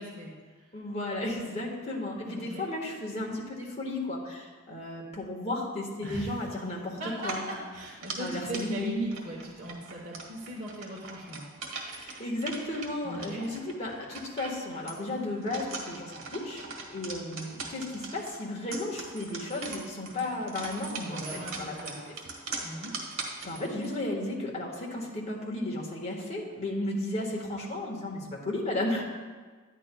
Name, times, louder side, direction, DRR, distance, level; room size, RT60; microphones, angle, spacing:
voice 1, 0.0-0.7 2.2-2.7 6.0-6.4 6.9-11.5 13.0-13.5 21.0-22.0 22.6-22.9, right 1 dB, 40° right, -5 dB, 1.1 m, -38 dB
voice 2, 0.7-7.6 8.2-9.0 11.9-22.0 23.4-29.0, left 1 dB, 30° left, -3 dB, 1.4 m, -34 dB
sound 1, 7.2-23.9, right 3 dB, 65° right, 1.6 m, -41 dB
11.0 x 9.9 x 2.3 m, 1.4 s
head